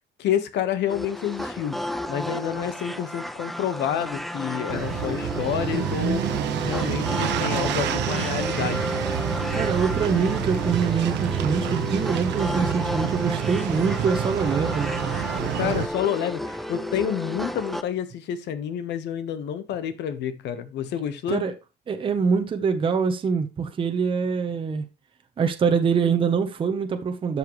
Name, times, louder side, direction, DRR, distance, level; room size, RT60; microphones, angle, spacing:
voice 1, 0.2-6.3 6.6-8.9 15.5-21.4, left 9 dB, 80° left, 1.3 m, -29 dB
sound 1, 0.9-17.8, equal, ahead, 0.5 m, -32 dB
sound 2, 4.7-15.9, right 10 dB, 80° right, 1.1 m, -28 dB
voice 2, 9.5-15.2 21.3-21.5 21.9-24.9 25.4-27.4, right 6 dB, 30° right, 0.9 m, -24 dB
12.5 x 6.8 x 3.1 m
cardioid pair, 160°, 18 cm